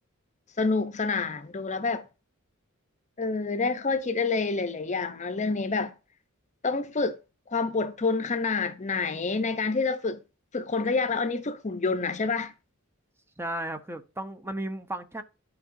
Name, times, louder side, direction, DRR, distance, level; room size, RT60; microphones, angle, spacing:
voice 1, 0.6-2.0 3.2-5.9 6.6-7.2 7.5-10.2 10.5-12.5, left 4 dB, 35° left, 0.7 m, -28 dB
voice 2, 13.4-15.2, right 1 dB, 10° right, 0.7 m, -34 dB
12.0 x 4.7 x 2.6 m
head